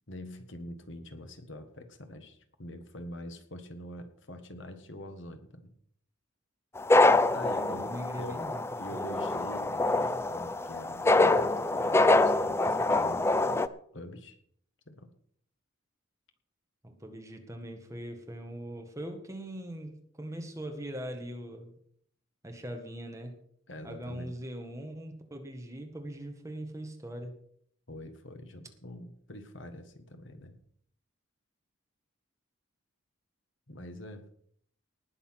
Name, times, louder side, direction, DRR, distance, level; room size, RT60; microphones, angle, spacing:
voice 1, 0.1-5.7 7.3-8.5 8.8-14.4 14.9-15.1 23.7-24.3 27.9-30.6 33.7-34.3, left 1 dB, 60° left, 7 dB, 1.6 m, -45 dB
sound 1, 6.8-13.7, left 2 dB, 10° left, 0.4 m, -25 dB
voice 2, 7.5-9.2 16.8-21.7 22.4-23.4 23.8-27.4, right 1 dB, 15° right, 4 dB, 1.7 m, -41 dB
19.0 x 6.9 x 6.0 m, 0.63 s
head